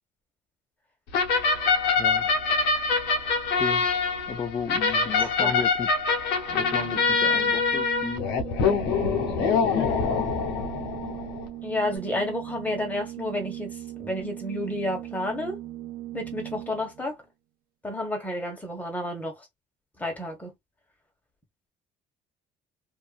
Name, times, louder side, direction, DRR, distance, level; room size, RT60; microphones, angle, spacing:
sound 1, 1.1-11.5, left 5 dB, 85° left, 0.9 m, -25 dB
voice 1, 2.0-2.3 3.5-3.9 4.3-5.9 6.4-8.3 8.9-10.4, left 6 dB, 30° left, 0.5 m, -34 dB
voice 2, 5.2-5.6 11.6-15.6 16.1-17.2 17.8-19.5 20.0-20.5, left 1 dB, 10° left, 1.4 m, -31 dB
Organ, 6.4-17.1, right 14 dB, 60° right, 0.8 m, -39 dB
2.7 x 2.5 x 2.4 m
cardioid pair, 110°, 17 cm